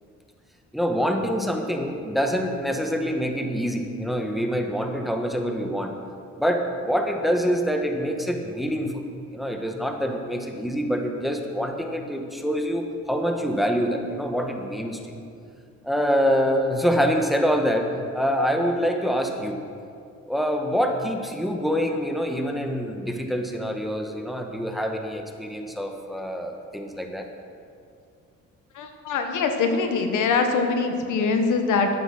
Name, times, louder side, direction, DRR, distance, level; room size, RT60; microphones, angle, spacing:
voice 1, 0.7-5.9 6.4-9.0 9.3-15.2 15.8-17.9 18.1-19.6 20.3-27.3, equal, ahead, 3 dB, 1.5 m, -25 dB
voice 2, 28.7-31.9, left 4 dB, 80° left, 5 dB, 1.4 m, -23 dB
13.0 x 9.9 x 6.0 m, 2.4 s
cardioid pair, 90°, 30 cm